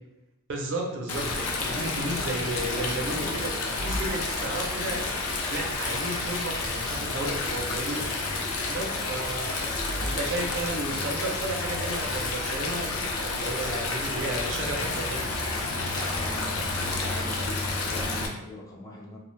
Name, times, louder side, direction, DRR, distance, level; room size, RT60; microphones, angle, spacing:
voice 1, 0.5-3.5 3.8-5.1 5.5-8.0 8.7-9.6 10.0-15.2, right 2 dB, 60° right, 1 dB, 0.5 m, -33 dB
Stream, 1.1-18.3, left 3 dB, 80° left, 0.5 m, -30 dB
voice 2, 14.2-14.6 15.8-19.2, left 2 dB, 15° left, -2 dB, 0.3 m, -41 dB
2.4 x 2.2 x 3.1 m, 0.94 s
head